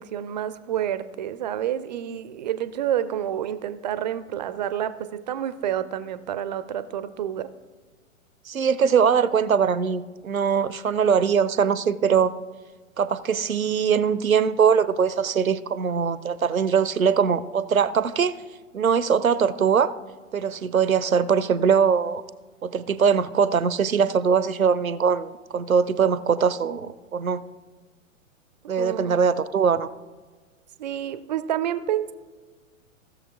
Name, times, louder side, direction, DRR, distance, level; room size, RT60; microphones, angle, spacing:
voice 1, 0.0-7.5 28.8-29.2 30.8-32.1, right 10 dB, 35° right, 14 dB, 0.4 m, -29 dB
voice 2, 8.5-12.3 13.0-18.3 18.7-19.9 20.3-22.2 22.6-27.4 28.7-29.9, right 6 dB, 85° right, 16 dB, 0.6 m, -22 dB
16.0 x 6.9 x 3.4 m, 1.4 s
figure-of-eight pair, 105°, 40 cm